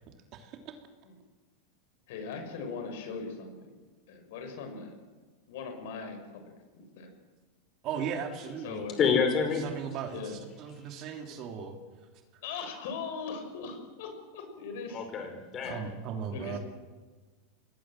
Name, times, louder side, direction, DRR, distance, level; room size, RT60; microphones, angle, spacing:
voice 1, 0.3-0.7 7.8-8.8 9.6-11.7 15.6-16.6, right 7 dB, 40° right, 4 dB, 3.1 m, -37 dB
voice 2, 2.1-3.5 4.1-5.0 5.5-7.1 8.6-9.0 10.1-10.4 12.4-15.1 15.6-15.8 16.3-16.6, left 5 dB, 65° left, 5 dB, 6.2 m, -40 dB
voice 3, 9.0-9.6 14.9-15.8, left 6 dB, 30° left, 5 dB, 5.1 m, -27 dB
24.5 x 20.0 x 7.7 m, 1.4 s
supercardioid pair, 145°, 0 cm